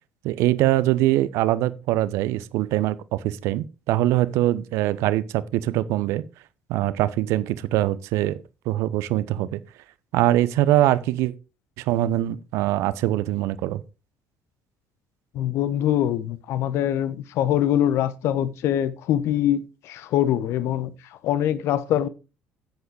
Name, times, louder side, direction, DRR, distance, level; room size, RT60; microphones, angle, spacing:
voice 1, 0.2-6.2 6.7-8.4 8.7-9.6 10.1-11.3 11.8-13.8, right 14 dB, 60° right, 0.7 m, -23 dB
voice 2, 15.3-20.9 21.2-22.1, left 11 dB, 55° left, 1.0 m, -23 dB
10.5 x 8.0 x 4.7 m
figure-of-eight pair, 55°, 5 cm